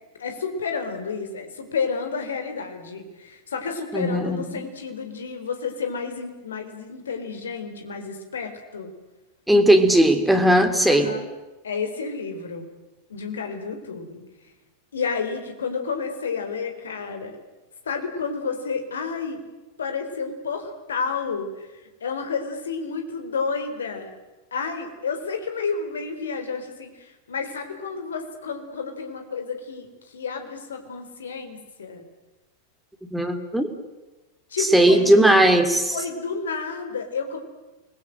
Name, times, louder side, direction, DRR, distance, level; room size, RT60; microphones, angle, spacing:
voice 1, 0.2-8.9 10.8-11.3 11.6-12.7 13.1-14.2 14.9-17.3 17.9-19.4 19.8-21.7 22.0-24.1 24.5-32.0 34.5-35.1 35.9-37.4, left 5 dB, 65° left, 6 dB, 4.3 m, -30 dB
voice 2, 3.9-4.6 9.5-11.1 33.1-33.7 34.6-36.0, right 1 dB, 5° right, 4 dB, 2.7 m, -18 dB
29.0 x 21.5 x 7.8 m, 1.1 s
figure-of-eight pair, 90°, 0 cm